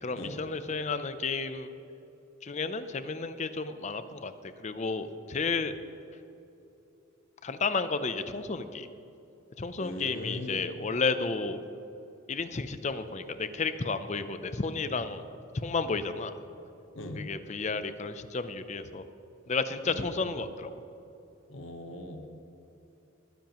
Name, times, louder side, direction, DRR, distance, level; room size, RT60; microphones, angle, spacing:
voice 1, 0.0-1.7 2.4-5.7 7.4-8.9 9.6-11.6 12.3-15.2 15.5-16.4 17.2-19.0 19.5-20.8, left 4 dB, 35° left, 11 dB, 0.5 m, -32 dB
voice 2, 9.8-10.6 16.9-17.2 19.8-20.3 21.5-22.3, left 1 dB, 70° left, 4 dB, 1.1 m, -39 dB
19.5 x 10.5 x 3.0 m, 2.9 s
head